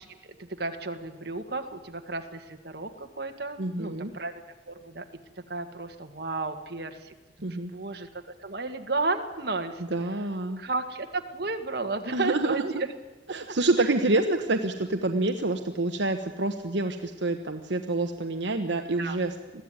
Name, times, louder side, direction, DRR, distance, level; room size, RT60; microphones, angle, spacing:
voice 1, 0.0-5.1 5.5-9.8 10.6-12.6 13.5-13.9 19.0-19.2, right 3 dB, 55° right, 5 dB, 1.7 m, -33 dB
voice 2, 3.6-4.1 7.4-7.7 9.9-10.6 12.1-12.8 13.3-19.3, right 2 dB, 70° right, 5 dB, 1.2 m, -27 dB
21.5 x 15.0 x 9.7 m, 1.2 s
head